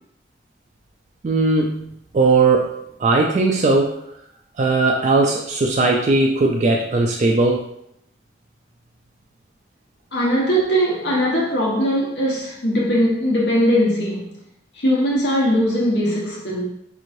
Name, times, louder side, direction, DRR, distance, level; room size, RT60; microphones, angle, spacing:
voice 1, 1.2-4.0 4.6-7.7, right 3 dB, 40° right, 0 dB, 0.3 m, -18 dB
voice 2, 10.1-14.3 14.8-16.6, equal, 65° left, -4 dB, 1.1 m, -20 dB
5.3 x 3.1 x 2.6 m, 0.74 s
head